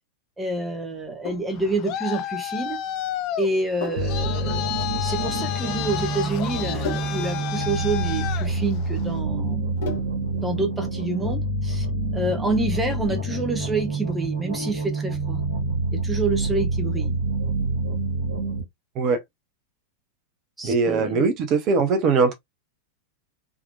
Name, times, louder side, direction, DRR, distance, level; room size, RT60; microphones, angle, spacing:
voice 1, 0.4-2.8 3.4-9.8 10.3-11.9 12.1-15.4 15.9-17.2 20.6-21.2, right 2 dB, 10° right, 1.0 m, -28 dB
Sink (filling or washing), 0.9-10.4, left 3 dB, 60° left, 1.2 m, -39 dB
Traffic noise roadway noise, 1.5-9.2, left 12 dB, 40° left, 0.5 m, -32 dB
sound 1, 4.0-18.6, right 2 dB, 75° right, 1.6 m, -27 dB
voice 2, 20.6-22.3, right 4 dB, 35° right, 0.9 m, -21 dB
3.6 x 3.0 x 2.5 m
figure-of-eight pair, 90°, 0 cm